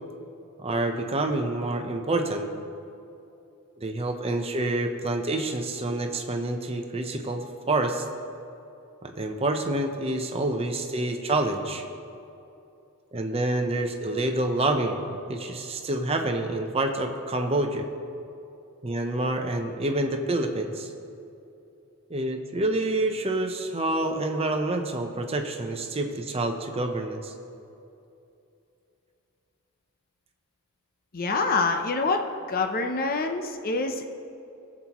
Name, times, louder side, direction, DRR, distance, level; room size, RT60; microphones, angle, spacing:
voice 1, 0.6-2.5 3.8-8.0 9.0-11.8 13.1-17.9 18.8-20.9 22.1-27.3, right 2 dB, 30° right, 4 dB, 0.8 m, -27 dB
voice 2, 31.1-34.1, left 3 dB, 40° left, 6 dB, 0.7 m, -26 dB
19.5 x 7.5 x 3.0 m, 2.7 s
head